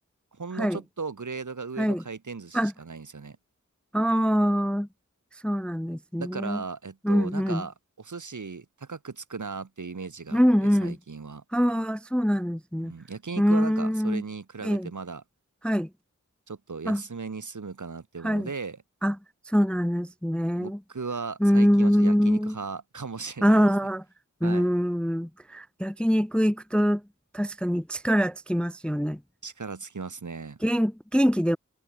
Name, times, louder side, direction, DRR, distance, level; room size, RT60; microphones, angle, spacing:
voice 1, 0.4-3.4 6.2-11.4 12.8-15.2 16.5-18.8 20.6-23.7 24.4-24.7 29.4-30.6, right 4 dB, 80° right, 1.4 m, -37 dB
voice 2, 3.9-4.9 5.4-6.6 7.0-7.7 10.3-11.0 11.5-12.9 13.4-14.2 14.6-14.9 15.6-15.9 16.9-17.0 18.2-18.5 19.0-19.2 19.5-20.8 21.4-22.6 23.4-24.0 24.4-27.0 27.3-29.2 30.6-31.6, equal, 5° left, 0.3 m, -24 dB
wide cardioid pair, 50°, 30 cm